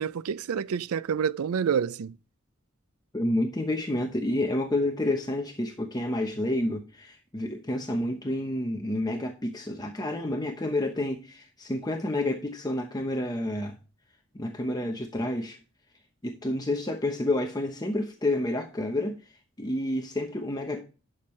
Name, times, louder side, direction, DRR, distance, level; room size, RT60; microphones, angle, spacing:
voice 1, 0.0-2.2, right 7 dB, 80° right, 0.4 m, -28 dB
voice 2, 3.1-13.8 14.3-15.6 16.2-19.2 19.6-20.8, left 1 dB, 20° left, 0.9 m, -29 dB
11.5 x 7.2 x 3.2 m
head